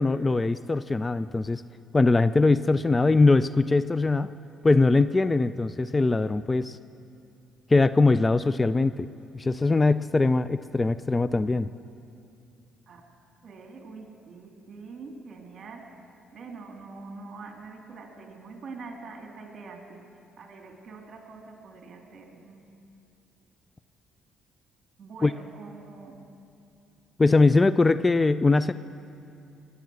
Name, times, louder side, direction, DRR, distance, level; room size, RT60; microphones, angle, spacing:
voice 1, 0.0-1.6 1.9-4.3 4.6-6.8 7.7-9.1 9.3-11.7 25.2-25.3 27.2-28.7, left 3 dB, 25° left, 15 dB, 0.4 m, -21 dB
voice 2, 13.4-15.9 16.3-20.0 20.4-22.7 25.0-26.1, right 4 dB, 50° right, 2 dB, 2.9 m, -44 dB
21.5 x 8.4 x 7.8 m, 2.6 s
supercardioid pair, 75°, 0 cm